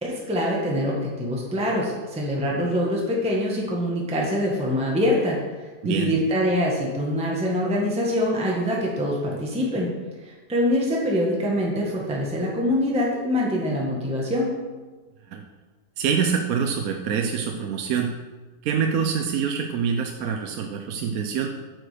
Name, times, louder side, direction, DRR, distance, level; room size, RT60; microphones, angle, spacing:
voice 1, 0.0-9.9 10.2-14.5, equal, 5° right, -3 dB, 1.3 m, -24 dB
voice 2, 5.8-6.1 15.3-15.4 16.0-18.1 18.6-21.5, right 7 dB, 65° right, 4 dB, 1.0 m, -25 dB
8.8 x 6.3 x 5.0 m, 1.3 s
omnidirectional pair, 1.9 m